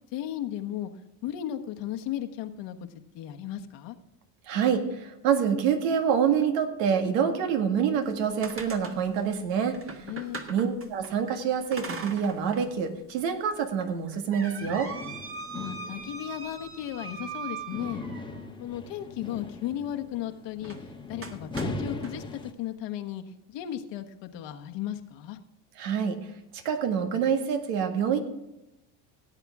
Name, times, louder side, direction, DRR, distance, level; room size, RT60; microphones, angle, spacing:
voice 1, 0.1-0.9 1.2-2.8 3.1-4.0 10.0-10.4 15.5-18.0 18.6-20.8 21.1-23.2 23.5-25.4, left 11 dB, 60° left, 5 dB, 1.4 m, -35 dB
voice 2, 4.5-10.1 10.5-14.9 25.8-26.2 26.5-28.2, right 7 dB, 75° right, 6 dB, 2.0 m, -26 dB
sound 1, 8.0-11.1 11.7-12.7 13.1-13.2 13.8-18.5 20.6-20.8 21.2-22.1, right 4 dB, 25° right, 1.7 m, -41 dB
sound 2, 14.6-22.5, left 2 dB, 10° left, 1.1 m, -40 dB
16.5 x 8.2 x 3.6 m, 0.93 s
supercardioid pair, 100°, 47 cm